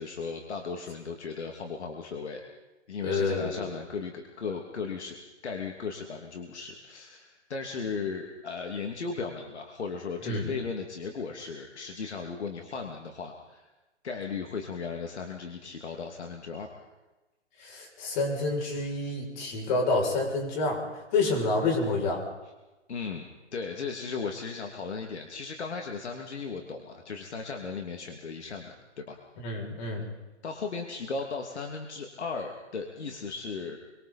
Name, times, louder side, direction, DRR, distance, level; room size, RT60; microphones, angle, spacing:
voice 1, 0.0-2.4 2.9-5.2 5.4-13.7 14.0-16.9 22.9-29.2 30.4-33.8, left 5 dB, 70° left, 3 dB, 2.9 m, -36 dB
voice 2, 3.0-3.7 10.3-10.5 17.6-20.8 21.1-22.2 29.4-30.1, left 3 dB, 40° left, 1 dB, 7.6 m, -28 dB
29.0 x 24.5 x 4.4 m, 1.1 s
hypercardioid pair, 135°, 35 cm